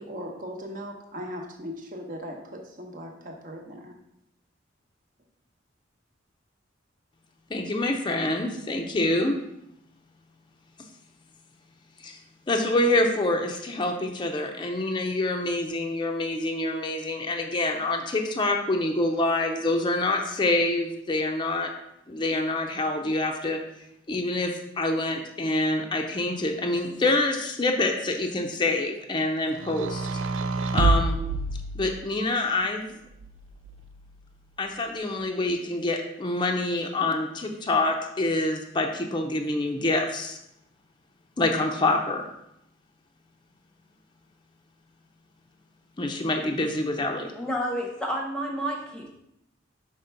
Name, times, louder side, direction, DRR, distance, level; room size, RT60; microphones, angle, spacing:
voice 1, 0.0-3.9, equal, 45° right, 2 dB, 1.0 m, -38 dB
voice 2, 7.5-9.4 12.0-12.2 12.5-21.7 22.1-23.6 24.1-24.5 24.8-30.1 30.7-31.2 31.7-32.9 34.6-40.4 41.4-42.3 46.0-47.3, left 2 dB, 25° left, 2 dB, 0.5 m, -26 dB
sound 1, 29.6-32.3 33.2-34.2, right 3 dB, 80° right, 0.4 m, -28 dB
voice 3, 47.4-49.1, equal, 5° left, -1 dB, 0.9 m, -30 dB
5.2 x 3.4 x 5.7 m, 0.80 s
head